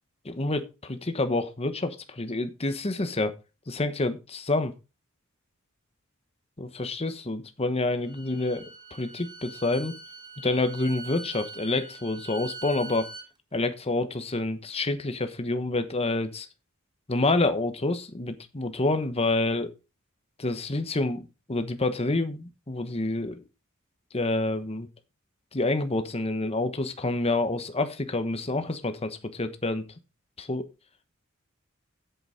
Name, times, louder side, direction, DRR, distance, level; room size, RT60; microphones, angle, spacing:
voice 1, 0.2-3.3 3.7-4.7 6.6-10.0 10.4-13.1 13.5-16.5 17.1-19.7 20.4-23.4 24.1-24.9 25.5-29.8 30.4-30.7, left 2 dB, 30° left, 1.1 m, -28 dB
Bowed string instrument, 7.9-13.3, right 3 dB, 20° right, 1.7 m, -43 dB
8.2 x 7.8 x 5.1 m
head